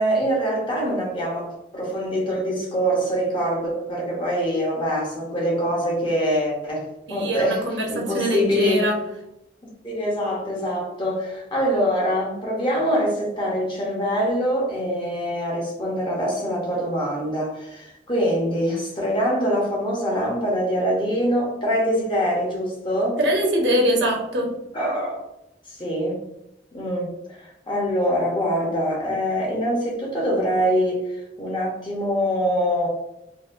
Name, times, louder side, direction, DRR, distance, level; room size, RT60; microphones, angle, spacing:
voice 1, 0.0-8.9 9.8-23.2 24.7-25.3 25.7-26.2 26.7-27.1 27.4-32.9, equal, 25° left, -3 dB, 0.9 m, -24 dB
voice 2, 7.1-9.0 23.2-24.5, equal, 90° right, 1 dB, 0.9 m, -22 dB
4.0 x 2.2 x 2.5 m, 0.87 s
head